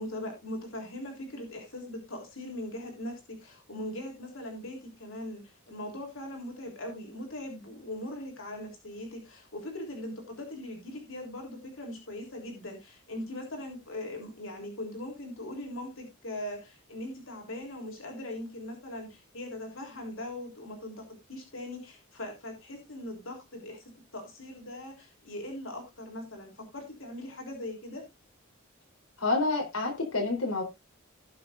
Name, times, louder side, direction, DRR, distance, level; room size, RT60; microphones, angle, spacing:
voice 1, 0.0-23.8 24.1-28.0, left 1 dB, 70° left, 2 dB, 3.5 m, -40 dB
voice 2, 29.2-30.6, left 3 dB, 85° left, 1 dB, 3.7 m, -28 dB
18.0 x 6.8 x 2.5 m, 0.22 s
head